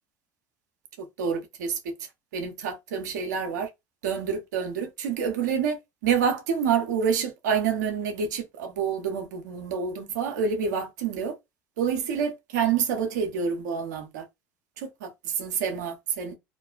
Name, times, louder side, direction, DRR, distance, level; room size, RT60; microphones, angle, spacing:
voice 1, 1.0-1.9 2.3-3.7 4.0-11.3 11.8-14.3 14.8-16.4, right 6 dB, 80° right, 0.7 m, -28 dB
2.5 x 2.1 x 2.3 m
hypercardioid pair, 80°, 9 cm